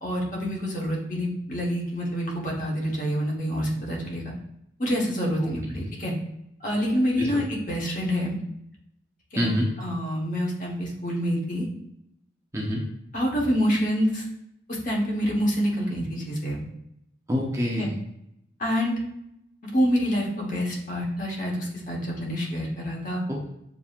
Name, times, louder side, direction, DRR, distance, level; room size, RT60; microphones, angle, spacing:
voice 1, 0.0-4.2 4.8-6.1 6.6-8.4 9.3-9.5 9.8-11.7 13.1-14.2 14.7-16.6 17.8-17.9 18.6-18.9 19.7-23.2, equal, 45° left, -3 dB, 1.1 m, -27 dB
voice 2, 9.4-9.7 12.5-12.8 17.3-17.9 23.3-23.5, equal, 15° right, -2 dB, 0.6 m, -26 dB
6.9 x 2.6 x 2.4 m, 0.80 s
head